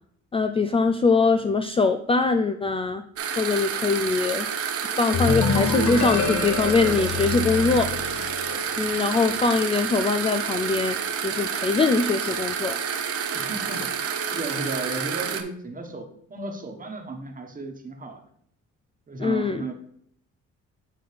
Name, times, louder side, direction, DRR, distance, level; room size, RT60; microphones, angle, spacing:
voice 1, 0.3-3.0 3.4-4.5 5.0-8.2 8.5-11.0 11.2-12.8 19.2-19.6, left 4 dB, 20° left, 7 dB, 0.3 m, -23 dB
sound 1, 3.2-15.4, right 7 dB, 50° right, 0.7 m, -29 dB
sound 2, 5.1-8.8, left 4 dB, 60° left, 1.1 m, -26 dB
voice 2, 13.3-14.0 14.3-18.2 19.1-19.7, right 3 dB, 25° right, 3 dB, 1.2 m, -34 dB
8.7 x 3.9 x 3.3 m, 0.68 s
cardioid pair, 90°, 30 cm